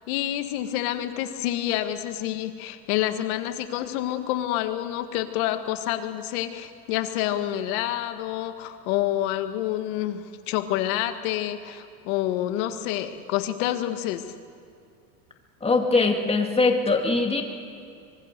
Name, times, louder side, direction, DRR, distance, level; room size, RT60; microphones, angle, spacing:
voice 1, 0.1-14.2, left 13 dB, 70° left, 8 dB, 1.9 m, -28 dB
voice 2, 15.6-17.4, left 3 dB, 15° left, 3 dB, 2.3 m, -22 dB
25.0 x 22.0 x 6.8 m, 2.4 s
supercardioid pair, 135°, 44 cm